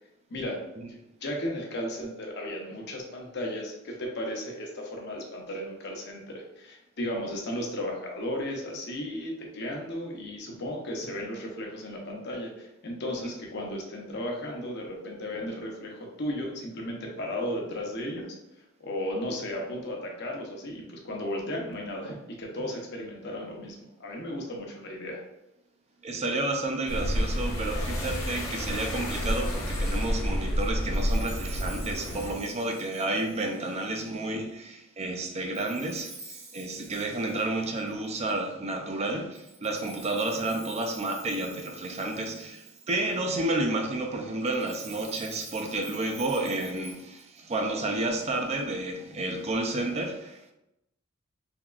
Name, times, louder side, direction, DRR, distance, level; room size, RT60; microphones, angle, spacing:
voice 1, 1.2-18.3 18.8-25.2, left 1 dB, 60° left, 0 dB, 0.7 m, -35 dB
voice 2, 26.0-50.5, right 2 dB, 35° right, 3 dB, 0.4 m, -31 dB
sound 1, 26.9-32.3, equal, 90° left, 0.8 m, -29 dB
Chime, 30.8-34.2 35.5-38.4 39.3-43.1 44.4-47.5, right 4 dB, 85° right, 0.7 m, -48 dB
3.5 x 2.9 x 2.4 m, 0.89 s
head